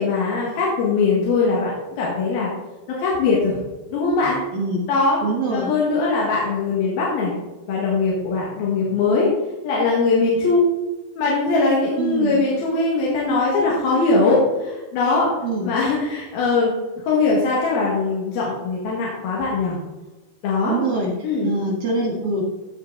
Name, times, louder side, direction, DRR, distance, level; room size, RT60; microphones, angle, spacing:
voice 1, 0.0-2.5 2.9-3.6 3.9-4.4 4.9-5.2 5.5-7.3 7.7-9.3 9.6-10.6 11.2-15.3 15.6-16.7 17.0-19.8 20.4-20.8 21.2-21.5, left 3 dB, 70° left, -5 dB, 3.5 m, -21 dB
voice 2, 4.5-4.8 5.2-5.7 12.0-12.4 15.4-15.7 20.6-21.1 21.4-22.4, right 3 dB, 50° right, -1 dB, 1.9 m, -24 dB
15.5 x 5.8 x 3.9 m, 1.1 s
omnidirectional pair, 4.5 m